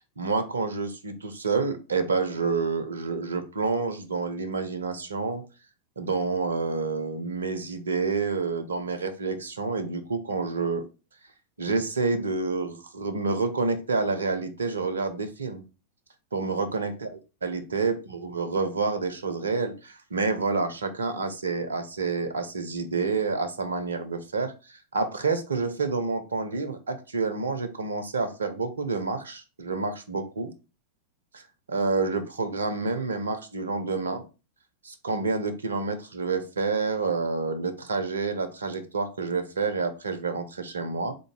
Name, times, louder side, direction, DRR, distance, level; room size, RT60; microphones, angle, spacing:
voice 1, 0.2-5.4 6.0-10.8 11.6-15.6 16.3-17.1 17.4-30.5 31.3-31.4 31.7-34.2 34.8-41.1, right 4 dB, 70° right, 8 dB, 0.6 m, -28 dB
3.7 x 2.6 x 4.5 m, 0.32 s
figure-of-eight pair, 90°, 0 cm